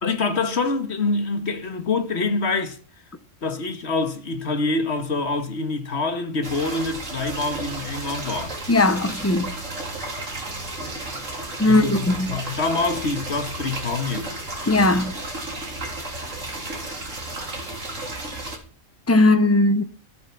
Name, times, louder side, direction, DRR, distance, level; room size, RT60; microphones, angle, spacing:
voice 1, 0.0-2.8 3.4-8.6 11.6-14.4, left 3 dB, 55° left, 1.8 m, -26 dB
sound 1, 6.4-18.6, right 2 dB, 75° right, 3.5 m, -33 dB
voice 2, 8.7-9.5 11.6-12.3 14.7-15.1 19.1-19.8, left 2 dB, 15° left, 0.7 m, -18 dB
14.0 x 9.7 x 5.9 m
omnidirectional pair, 1.3 m